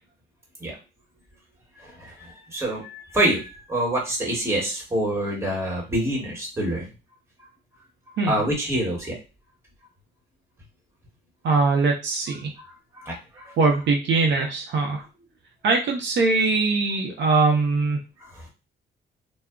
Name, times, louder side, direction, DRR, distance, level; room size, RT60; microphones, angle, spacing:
voice 1, 1.8-6.9 8.3-9.2 13.0-13.6 14.8-14.9 18.2-18.5, right 1 dB, 15° right, -2 dB, 1.2 m, -26 dB
voice 2, 11.4-12.5 13.6-15.0 15.6-18.0, right 3 dB, 65° right, 1 dB, 0.6 m, -21 dB
2.2 x 2.0 x 3.5 m, 0.30 s
cardioid pair, 90°, 20 cm